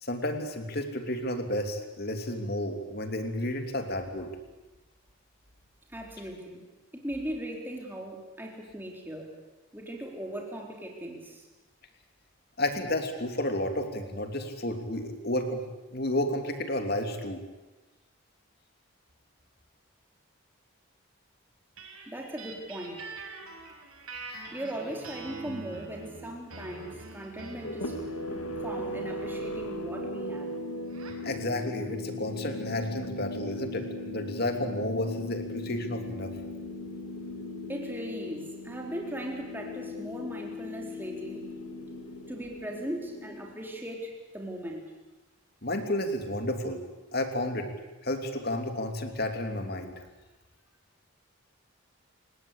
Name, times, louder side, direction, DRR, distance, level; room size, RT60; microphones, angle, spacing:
voice 1, 0.0-4.3 12.6-15.6 15.9-17.4 31.2-36.5 45.6-46.8 47.1-47.7 48.0-50.0, left 1 dB, 45° left, 6 dB, 3.0 m, -31 dB
voice 2, 5.9-6.6 6.9-9.3 9.7-11.5 22.1-23.0 24.5-27.9 28.6-30.5 37.7-41.4 42.3-44.8, right 1 dB, 10° right, 0 dB, 4.0 m, -38 dB
sound 1, 21.8-31.3, right 3 dB, 90° right, 6.0 m, -45 dB
sound 2, 27.6-43.9, left 1 dB, 85° left, 1.9 m, -38 dB
30.0 x 18.0 x 8.4 m, 1.1 s
head